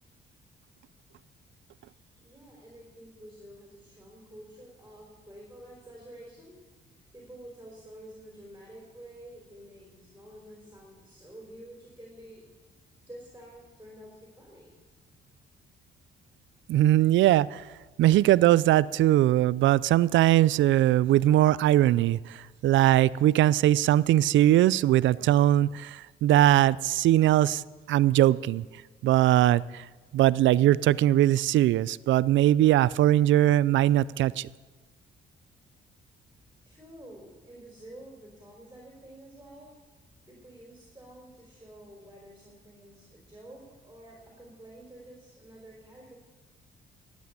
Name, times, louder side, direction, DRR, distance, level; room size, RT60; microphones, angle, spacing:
voice 1, 2.2-6.7 7.1-12.5 13.0-14.7 36.7-39.7 40.3-46.1, right 1 dB, 10° right, 3.8 m, -49 dB
voice 2, 16.7-17.6 18.0-27.6 27.9-28.6 29.0-29.8 30.1-34.5, right 13 dB, 75° right, 0.4 m, -21 dB
13.0 x 8.4 x 8.6 m
cardioid pair, 90°, 20 cm